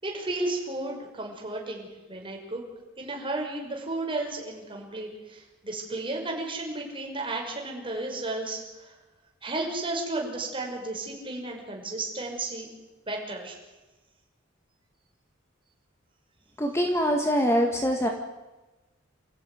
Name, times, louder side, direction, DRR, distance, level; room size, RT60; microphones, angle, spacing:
voice 1, 0.0-2.6 3.0-8.9 9.4-12.7 13.1-13.6, right 2 dB, 25° right, 0 dB, 6.0 m, -33 dB
voice 2, 16.6-18.1, equal, 15° left, 3 dB, 2.0 m, -24 dB
28.0 x 15.5 x 9.6 m, 1.1 s
head